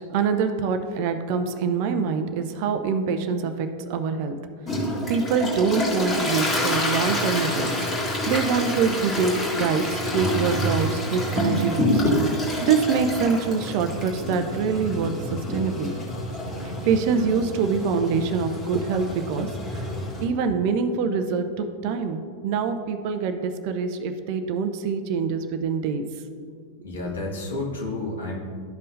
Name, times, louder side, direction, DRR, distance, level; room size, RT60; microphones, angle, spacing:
voice 1, 0.1-4.4 5.1-12.0 12.6-15.9 16.6-19.8 20.2-26.1 27.0-27.1, right 5 dB, 45° right, 8 dB, 0.6 m, -25 dB
Toilet flush, 4.7-20.2, left 1 dB, 20° left, 1.8 m, -27 dB
voice 2, 26.8-28.3, left 2 dB, 65° left, -2 dB, 1.7 m, -30 dB
12.5 x 5.5 x 2.6 m, 2.2 s
figure-of-eight pair, 90°, 0 cm